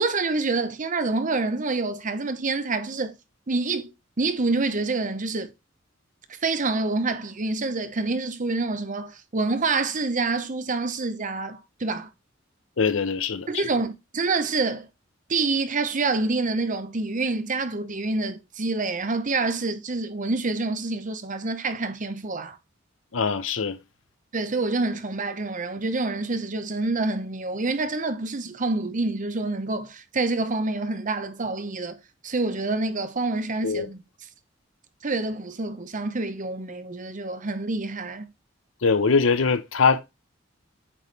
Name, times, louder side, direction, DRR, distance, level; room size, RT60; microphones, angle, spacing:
voice 1, 0.0-3.1 3.5-3.9 4.2-5.5 6.4-12.1 13.5-14.9 15.3-22.6 24.3-32.0 32.2-34.0 35.0-38.3, right 3 dB, 40° right, 0.8 m, -27 dB
voice 2, 12.8-13.5 23.1-23.8 33.6-33.9 38.8-40.0, left 5 dB, 80° left, 0.8 m, -22 dB
8.6 x 4.7 x 3.3 m
head